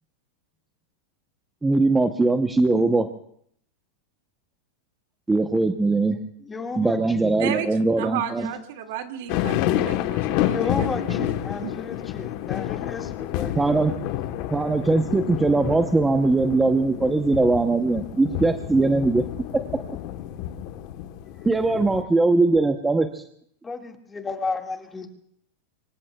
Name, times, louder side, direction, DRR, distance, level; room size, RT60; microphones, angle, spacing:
voice 1, 1.6-3.1 5.3-6.2 6.8-8.5 13.6-13.9 14.5-19.2 21.4-23.2, right 3 dB, 10° right, 6 dB, 0.8 m, -21 dB
voice 2, 6.4-7.4 10.5-14.0 23.6-25.1, left 4 dB, 15° left, 3 dB, 1.9 m, -33 dB
voice 3, 8.0-11.3 11.6-11.7, right 10 dB, 65° right, 5 dB, 2.1 m, -32 dB
sound 1, 9.3-22.0, left 12 dB, 50° left, 1.1 m, -29 dB
25.0 x 24.0 x 2.3 m, 0.67 s
supercardioid pair, 150°, 0 cm